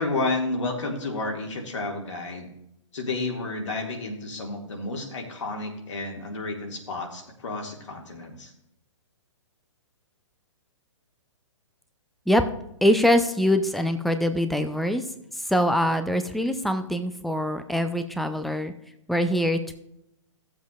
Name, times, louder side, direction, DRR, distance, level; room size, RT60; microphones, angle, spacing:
voice 1, 0.0-2.5 2.9-8.5, left 2 dB, 70° left, 1 dB, 2.2 m, -31 dB
voice 2, 12.8-15.0 15.5-18.7 19.1-19.7, equal, ahead, 8 dB, 0.6 m, -23 dB
15.0 x 7.4 x 2.5 m, 0.79 s
figure-of-eight pair, 125°, 16 cm